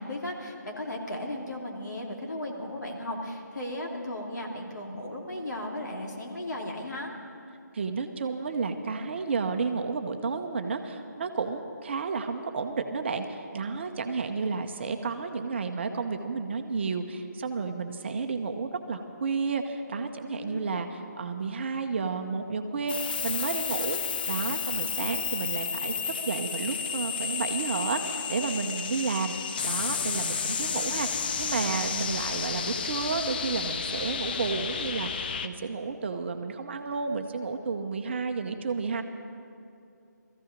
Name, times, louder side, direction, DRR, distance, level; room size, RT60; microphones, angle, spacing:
voice 1, 0.0-7.1 20.3-20.7, left 1 dB, 70° left, -1 dB, 2.7 m, -36 dB
voice 2, 7.7-24.0 24.3-29.4 29.6-39.0, right 4 dB, 35° right, 6 dB, 0.8 m, -31 dB
sound 1, 22.9-35.5, left 6 dB, 30° left, 0.5 m, -32 dB
19.0 x 14.5 x 5.2 m, 2.5 s
figure-of-eight pair, 150°, 10 cm